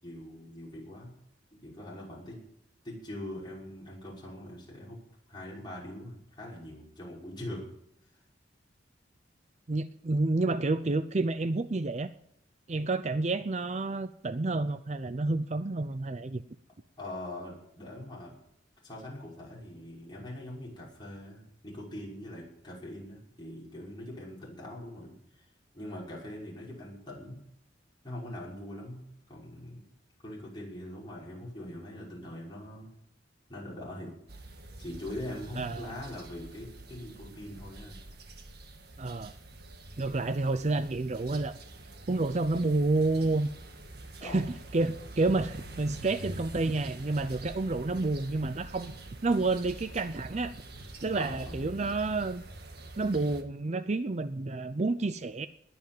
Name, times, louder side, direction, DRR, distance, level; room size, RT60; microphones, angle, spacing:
voice 1, 0.0-1.1 1.5-2.4 2.8-5.0 5.3-7.7 17.0-18.3 18.8-25.5 25.7-27.4 28.0-29.8 30.2-32.9 33.5-34.2 34.8-38.0 44.2-44.4 51.2-51.6, left 1 dB, 25° left, -5 dB, 6.1 m, -42 dB
voice 2, 9.7-12.1 12.7-16.4 35.6-35.9 39.0-39.3 40.0-41.6 42.1-43.5 44.2-50.5 51.0-52.4 53.0-55.5, right 2 dB, 40° right, 12 dB, 0.6 m, -29 dB
sound 1, 34.3-53.4, right 2 dB, 60° right, 1.8 m, -46 dB
20.0 x 7.1 x 9.0 m, 0.75 s
head